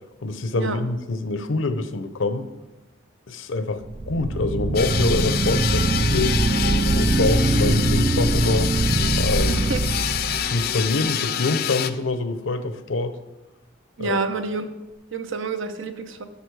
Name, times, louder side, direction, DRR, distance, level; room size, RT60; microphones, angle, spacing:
voice 1, 0.2-2.5 3.3-6.4 6.9-8.7 9.2-9.6 10.5-13.2 14.0-14.2, left 3 dB, 80° left, 11 dB, 0.7 m, -25 dB
sound 1, 3.8-10.9, right 2 dB, 30° right, 0.4 m, -22 dB
sound 2, 4.7-11.9, left 9 dB, 50° left, 0.4 m, -27 dB
voice 2, 9.5-9.8 14.0-14.7 15.1-16.2, right 4 dB, 85° right, 8 dB, 0.9 m, -28 dB
11.5 x 6.8 x 4.8 m, 1.1 s
head